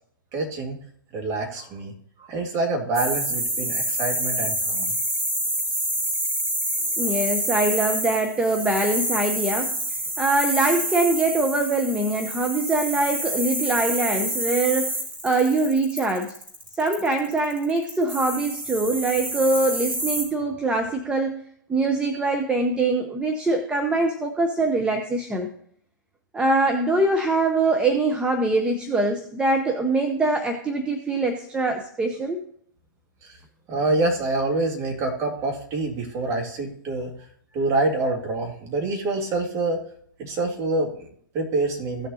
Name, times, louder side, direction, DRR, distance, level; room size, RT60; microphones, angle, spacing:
voice 1, 0.3-0.8 1.1-1.9 2.3-5.0 33.2-33.4 33.7-37.1 37.5-39.8 40.2-42.1, right 2 dB, 25° right, 0 dB, 2.1 m, -26 dB
sound 1, 2.9-20.2, right 1 dB, 85° right, 4.1 m, -28 dB
voice 2, 7.0-15.0 15.2-16.3 16.8-21.4 21.7-25.5 26.3-32.4, right 2 dB, 10° right, 4 dB, 0.7 m, -23 dB
16.0 x 6.7 x 2.7 m, 0.66 s
figure-of-eight pair, 120°, 12 cm